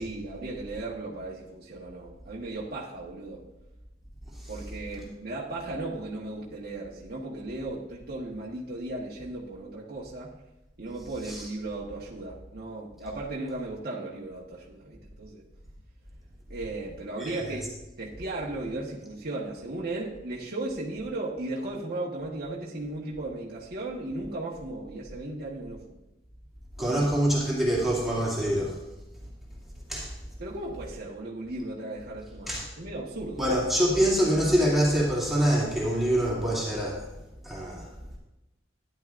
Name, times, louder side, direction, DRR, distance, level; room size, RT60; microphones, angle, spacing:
voice 1, 0.0-3.4 4.5-10.3 10.8-15.4 16.5-17.7 18.0-26.0 26.8-27.0 30.4-33.4, right 2 dB, 55° right, -5 dB, 1.3 m, -36 dB
voice 2, 26.8-28.8 29.9-30.1 32.5-32.7 33.4-37.1 37.4-37.9, equal, ahead, -7 dB, 2.6 m, -25 dB
14.0 x 10.5 x 2.5 m, 0.97 s
head